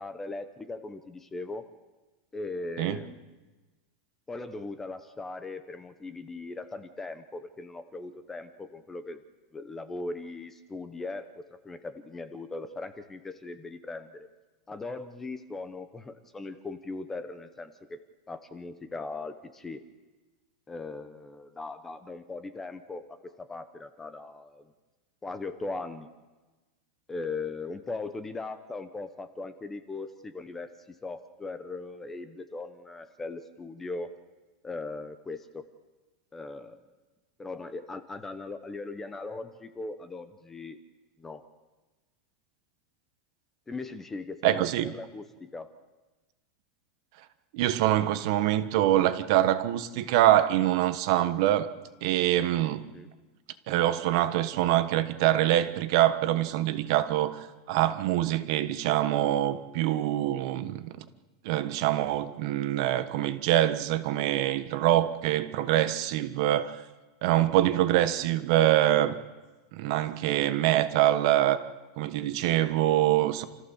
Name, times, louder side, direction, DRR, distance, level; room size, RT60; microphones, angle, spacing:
voice 1, 0.0-1.7 2.3-3.2 4.3-9.2 9.5-14.3 14.7-18.0 18.3-19.8 20.7-24.7 25.2-26.1 27.1-34.1 34.6-35.6 36.3-36.8 37.4-40.8 41.2-41.4 43.7-44.7 44.9-45.7 52.9-53.1, left 3 dB, 10° left, 0.9 m, -39 dB
voice 2, 44.4-44.9 47.5-51.7 52.0-52.8 53.7-61.0 61.4-66.8 67.2-69.2 69.7-71.6 72.0-73.5, right 13 dB, 45° right, 1.3 m, -25 dB
29.0 x 14.5 x 7.2 m
supercardioid pair, 170°, 3 cm